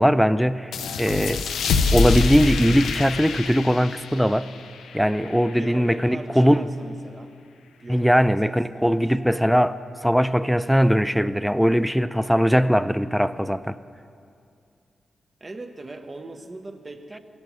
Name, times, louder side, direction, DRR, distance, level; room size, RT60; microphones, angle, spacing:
voice 1, 0.0-1.4 1.9-4.5 4.9-6.7 7.9-13.8, equal, ahead, 14 dB, 0.4 m, -20 dB
sound 1, 0.7-5.9, left 4 dB, 85° left, 0.5 m, -26 dB
voice 2, 5.2-7.3 7.8-9.2 15.4-17.2, right 2 dB, 40° right, 6 dB, 0.9 m, -40 dB
17.0 x 8.5 x 3.2 m, 2.4 s
supercardioid pair, 45°, 0 cm